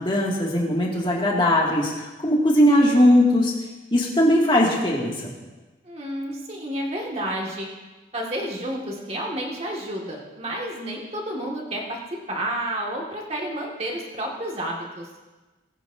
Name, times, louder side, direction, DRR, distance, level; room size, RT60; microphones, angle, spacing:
voice 1, 0.0-3.5 3.9-5.3, left 1 dB, 25° left, -3 dB, 2.1 m, -19 dB
voice 2, 5.9-7.7 8.1-12.0 12.3-15.1, right 1 dB, 35° right, -1 dB, 1.8 m, -30 dB
20.5 x 9.9 x 2.7 m, 1.2 s
head